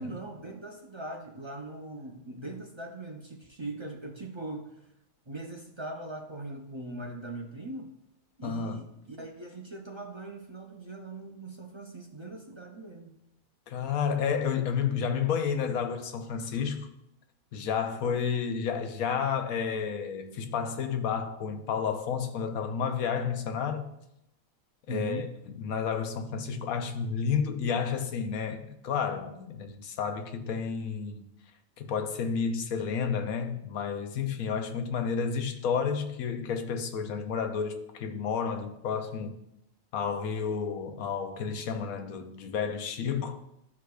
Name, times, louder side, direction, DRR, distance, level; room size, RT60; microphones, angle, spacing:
voice 1, 0.0-4.7 5.3-7.9 8.4-13.1 24.9-25.3, right 2 dB, 35° right, 0.4 m, -40 dB
voice 2, 8.4-8.8 13.7-16.9 17.5-23.9 24.9-25.3 25.6-31.3 31.8-39.4 39.9-43.4, left 6 dB, 80° left, 1.1 m, -31 dB
12.0 x 4.8 x 2.3 m
omnidirectional pair, 1.5 m